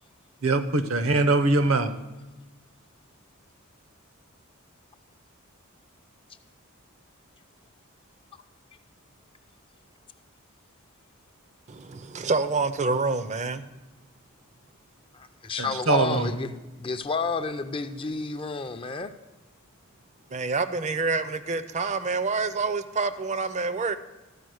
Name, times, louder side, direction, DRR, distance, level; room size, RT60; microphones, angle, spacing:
voice 1, 0.4-1.9 15.6-16.3, right 2 dB, 65° right, 11 dB, 0.8 m, -22 dB
voice 2, 11.7-13.6 20.3-24.0, right 4 dB, 35° right, 12 dB, 0.5 m, -27 dB
voice 3, 15.1-16.5 16.8-19.1, left 4 dB, 25° left, 8 dB, 0.4 m, -30 dB
13.0 x 5.0 x 6.3 m, 1.1 s
head